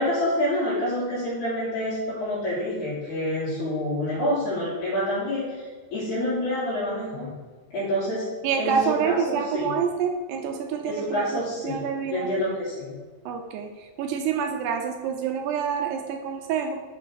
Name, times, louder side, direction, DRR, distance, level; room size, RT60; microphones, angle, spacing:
voice 1, 0.0-7.3 7.7-8.3 8.6-9.7 10.8-11.9 12.1-12.9, left 1 dB, 50° left, -11 dB, 2.9 m, -27 dB
voice 2, 8.4-12.3 13.3-16.8, right 7 dB, 80° right, 4 dB, 2.5 m, -27 dB
6.9 x 4.8 x 6.1 m, 1.4 s
omnidirectional pair, 5.2 m